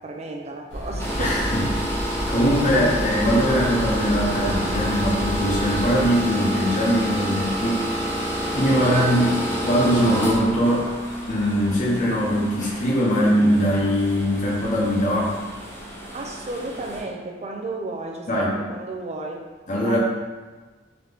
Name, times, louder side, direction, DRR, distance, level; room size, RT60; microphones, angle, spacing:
voice 1, 0.0-1.6 8.7-9.0 16.1-19.5 19.8-20.0, right 2 dB, 35° right, 1 dB, 0.5 m, -33 dB
sound 1, 0.7-6.1, equal, 85° left, 0.9 m, -31 dB
sound 2, 1.0-17.0, equal, 15° left, 0.9 m, -29 dB
voice 2, 1.2-1.7 2.3-11.0 11.3-15.3 18.3-18.6 19.7-20.0, equal, 45° left, -5 dB, 1.0 m, -21 dB
3.9 x 2.8 x 3.4 m, 1.3 s
head